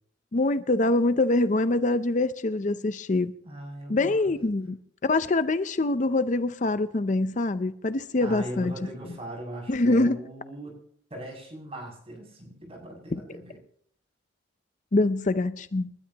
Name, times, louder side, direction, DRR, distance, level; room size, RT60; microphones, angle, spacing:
voice 1, 0.3-3.3 3.9-4.8 5.0-8.7 9.7-10.2 13.1-13.2 14.9-15.9, left 2 dB, 40° left, 0.6 m, -24 dB
voice 2, 3.4-4.3 8.2-10.8 11.1-13.6, right 1 dB, 30° right, 7.1 m, -39 dB
29.0 x 13.0 x 2.9 m
head